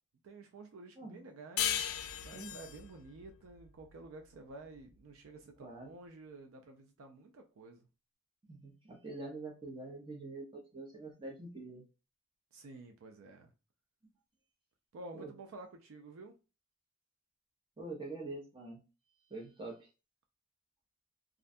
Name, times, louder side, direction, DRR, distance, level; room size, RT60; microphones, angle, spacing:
voice 1, 0.2-2.0 2.2-7.8 12.5-13.5 14.9-16.3, right 3 dB, 75° right, 0.4 m, -51 dB
sound 1, 1.6-4.7, left 9 dB, 85° left, 0.3 m, -37 dB
voice 2, 5.6-5.9 8.5-11.8 15.1-15.3 17.8-18.8 19.3-19.9, right 2 dB, 25° right, 0.5 m, -45 dB
2.4 x 2.1 x 2.5 m
head